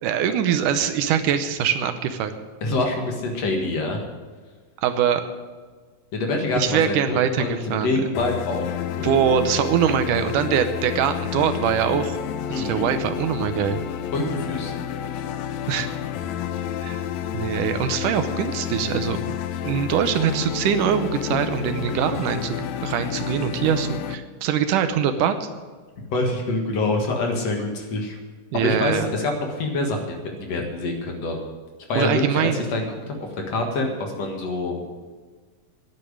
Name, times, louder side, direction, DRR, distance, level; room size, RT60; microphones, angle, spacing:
voice 1, 0.0-2.3 4.8-5.2 6.5-8.1 9.0-12.2 12.5-13.8 15.7-15.9 16.8-17.0 17.3-25.5 28.5-29.1 32.0-32.6, right 8 dB, 75° right, 9 dB, 2.3 m, -23 dB
voice 2, 2.6-4.0 6.1-9.1 12.5-12.8 14.1-14.7 26.1-28.2 28.5-29.3 29.6-31.4 31.9-33.2 33.5-34.8, left 2 dB, 55° left, 2 dB, 2.6 m, -26 dB
sound 1, 8.1-24.2, left 10 dB, 75° left, 1.7 m, -30 dB
10.5 x 8.8 x 9.8 m, 1.4 s
omnidirectional pair, 3.8 m